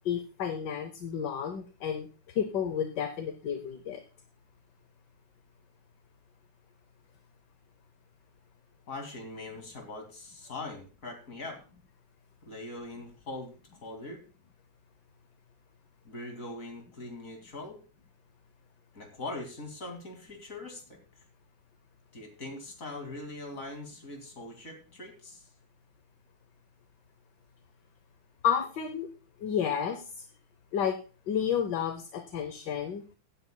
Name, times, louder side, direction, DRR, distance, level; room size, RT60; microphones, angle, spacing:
voice 1, 0.0-4.0 28.4-29.1 29.4-30.2 30.7-31.0 31.3-33.0, left 8 dB, 65° left, 7 dB, 1.4 m, -31 dB
voice 2, 8.9-11.6 12.4-13.6 13.8-14.2 16.0-17.8 18.9-21.0 22.1-25.4, left 2 dB, 40° left, 3 dB, 2.7 m, -41 dB
16.5 x 9.6 x 2.2 m, 0.35 s
omnidirectional pair, 2.2 m